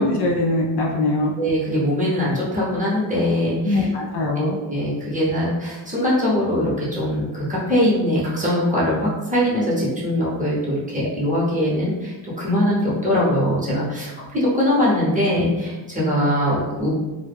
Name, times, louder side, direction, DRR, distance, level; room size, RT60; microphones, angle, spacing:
voice 1, 0.0-1.3 3.6-4.6, left 2 dB, 55° left, -1 dB, 0.5 m, -21 dB
voice 2, 1.4-3.9 4.4-16.9, left 1 dB, 15° right, -7 dB, 0.8 m, -22 dB
2.1 x 2.1 x 3.4 m, 1.1 s
cardioid pair, 120°, 49 cm